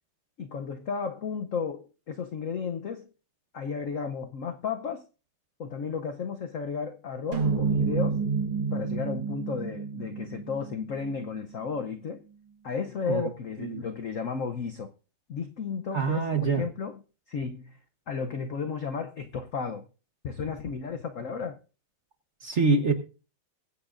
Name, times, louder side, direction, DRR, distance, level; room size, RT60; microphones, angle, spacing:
voice 1, 0.4-3.1 3.5-5.1 5.6-8.2 8.7-12.2 12.6-14.9 15.3-17.0 17.3-17.8 18.1-19.9 20.2-21.6, left 5 dB, 65° left, 0.7 m, -33 dB
sound 1, 7.3-11.6, right 5 dB, 80° right, 2.3 m, -29 dB
voice 2, 15.9-16.6 22.4-22.9, right 4 dB, 40° right, 1.1 m, -25 dB
22.0 x 8.8 x 2.5 m
omnidirectional pair, 2.4 m